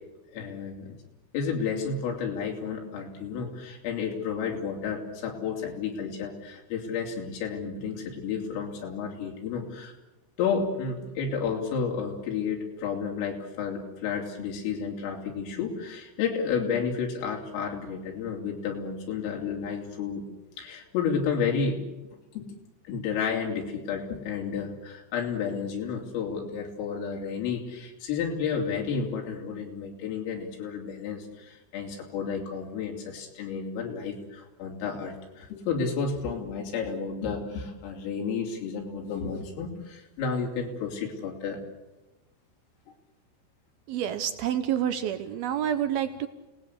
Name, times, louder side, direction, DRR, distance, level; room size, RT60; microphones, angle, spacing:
voice 1, 0.3-0.9 1.3-9.9 10.4-20.3 20.6-21.8 22.3-22.6 22.9-41.6, left 6 dB, 85° left, 0 dB, 5.9 m, -31 dB
voice 2, 43.9-46.3, right 10 dB, 80° right, 11 dB, 2.2 m, -28 dB
30.0 x 19.0 x 8.4 m, 1.1 s
omnidirectional pair, 5.8 m